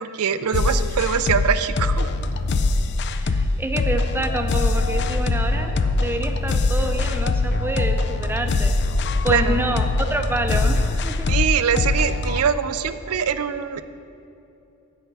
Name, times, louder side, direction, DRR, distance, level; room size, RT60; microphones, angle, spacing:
voice 1, 0.0-2.1 9.3-9.6 11.3-13.8, right 7 dB, 85° right, 12 dB, 0.5 m, -23 dB
sound 1, 0.5-12.4, left 3 dB, 50° left, 0.4 m, -22 dB
voice 2, 3.2-8.7 9.2-11.3, right 1 dB, 10° right, 5 dB, 0.6 m, -28 dB
14.0 x 10.0 x 3.4 m, 2.8 s
head